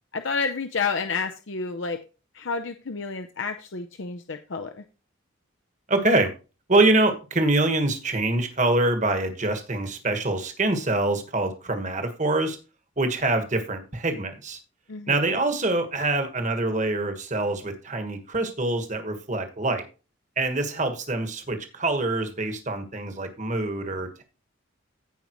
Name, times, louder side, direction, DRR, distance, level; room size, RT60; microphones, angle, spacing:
voice 1, 0.1-2.0 2.3-4.8 14.9-15.2, left 4 dB, 60° left, 6 dB, 0.6 m, -30 dB
voice 2, 5.9-6.3 6.7-12.6 13.0-14.6 15.1-19.8 20.4-24.2, right 2 dB, 35° right, 7 dB, 1.4 m, -25 dB
15.5 x 5.4 x 3.0 m, 0.33 s
head